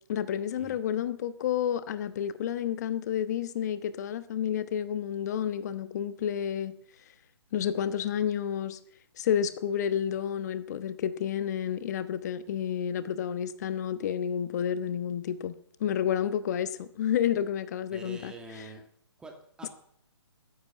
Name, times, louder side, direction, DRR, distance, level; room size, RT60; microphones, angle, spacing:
voice 1, 0.1-6.8 7.5-8.8 9.2-15.5 15.8-18.3, left 9 dB, 40° left, 13 dB, 1.2 m, -30 dB
voice 2, 17.9-18.8 19.2-19.7, right 2 dB, 5° right, 3 dB, 2.2 m, -45 dB
13.5 x 11.0 x 9.2 m, 0.65 s
hypercardioid pair, 155°, 15 cm